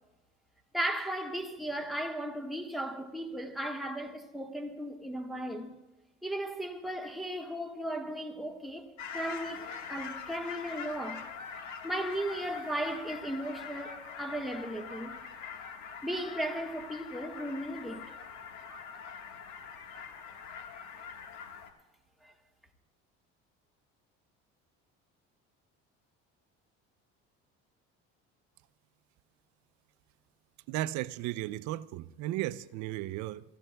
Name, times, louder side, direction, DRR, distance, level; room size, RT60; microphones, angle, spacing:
voice 1, 0.7-5.7 6.2-11.3 11.8-15.2 16.0-18.2 22.2-22.3, right 1 dB, ahead, 1.5 m, -36 dB
sound 1, 9.0-21.7, left 6 dB, 65° left, 1.6 m, -44 dB
voice 2, 30.7-33.4, right 15 dB, 70° right, 0.6 m, -35 dB
26.0 x 14.5 x 2.3 m
supercardioid pair, 100°, 30 cm